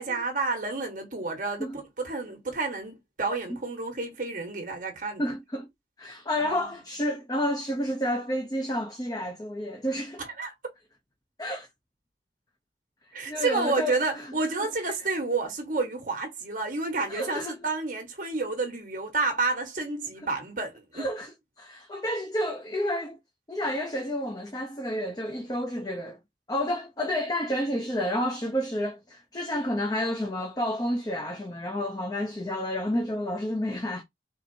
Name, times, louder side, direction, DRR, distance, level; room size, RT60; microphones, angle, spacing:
voice 1, 0.0-5.2 6.4-6.7 10.4-10.5 13.1-21.0, right 3 dB, 45° right, 1.4 m, -30 dB
voice 2, 5.2-5.7 6.0-10.2 11.4-11.7 13.3-14.3 14.8-14.9 17.1-17.6 20.9-23.2 23.5-26.2 26.5-34.0, equal, 20° left, 0.6 m, -30 dB
4.4 x 3.9 x 2.7 m
head